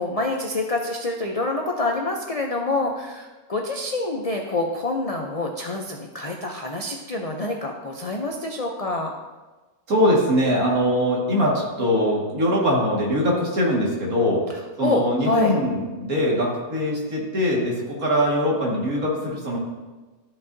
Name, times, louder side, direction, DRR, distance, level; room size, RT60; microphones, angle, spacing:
voice 1, 0.0-9.1 14.5-15.5, left 2 dB, 65° left, 1 dB, 0.3 m, -27 dB
voice 2, 9.9-14.4 14.8-19.6, equal, 70° right, -3 dB, 2.3 m, -22 dB
13.5 x 5.4 x 2.7 m, 1.2 s
omnidirectional pair, 1.6 m